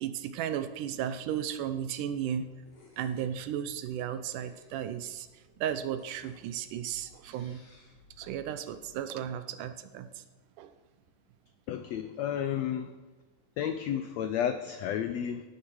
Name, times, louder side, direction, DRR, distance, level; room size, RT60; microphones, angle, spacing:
voice 1, 0.0-2.5 3.0-5.3 5.6-7.6 8.2-10.1 10.6-10.7, right 9 dB, 75° right, 10 dB, 2.2 m, -34 dB
sound 1, 0.8-8.9, left 3 dB, 55° left, 3.6 m, -61 dB
voice 2, 11.7-12.9 13.6-15.4, left 9 dB, 90° left, 9 dB, 1.5 m, -32 dB
14.5 x 9.5 x 6.2 m, 1.2 s
omnidirectional pair, 3.8 m